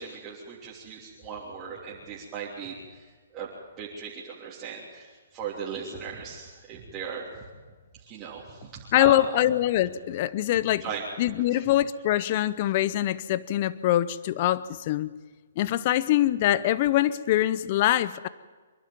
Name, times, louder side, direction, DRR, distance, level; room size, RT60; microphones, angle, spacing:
voice 1, 0.0-3.0 3.3-3.5 3.8-7.3 8.1-9.2 10.8-11.0 11.5-11.6, right 7 dB, 25° right, -7 dB, 3.2 m, -38 dB
voice 2, 8.9-10.9 11.2-15.1 15.6-18.3, left 13 dB, 40° left, 17 dB, 0.6 m, -24 dB
26.0 x 11.5 x 9.3 m, 1.4 s
hypercardioid pair, 150°, 0 cm